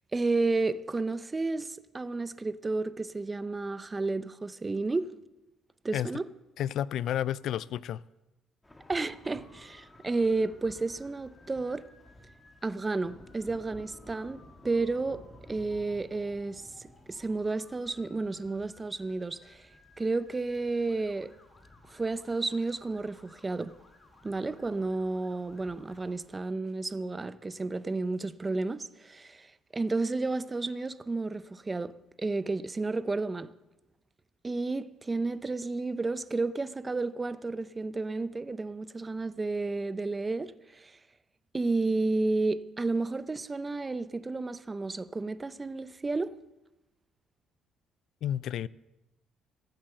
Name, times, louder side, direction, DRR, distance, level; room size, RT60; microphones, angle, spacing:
voice 1, 0.1-5.1 5.8-6.3 8.9-11.9 12.6-19.7 20.0-21.3 21.9-23.8 24.2-29.5 29.7-33.5 34.4-41.0 41.5-46.4, right 3 dB, 20° right, 0.5 m, -32 dB
voice 2, 6.6-8.0 48.2-48.7, left 11 dB, 70° left, 0.4 m, -31 dB
Thunder / Rain, 8.6-26.3, left 1 dB, 10° left, 1.3 m, -56 dB
Motor vehicle (road) / Siren, 8.8-26.1, left 3 dB, 40° left, 2.6 m, -61 dB
14.5 x 7.6 x 7.7 m
cardioid pair, 105°, 0 cm